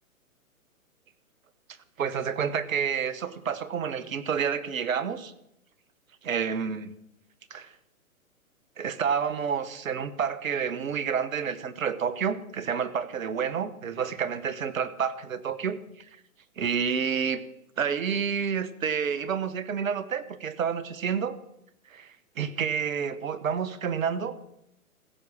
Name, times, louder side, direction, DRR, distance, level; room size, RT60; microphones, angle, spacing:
voice 1, 2.0-5.3 6.2-6.9 7.5-7.7 8.8-15.8 16.6-17.4 17.8-21.3 21.9-24.4, right 7 dB, 65° right, 14 dB, 1.2 m, -29 dB
15.5 x 6.2 x 7.1 m, 0.80 s
figure-of-eight pair, 125°, 44 cm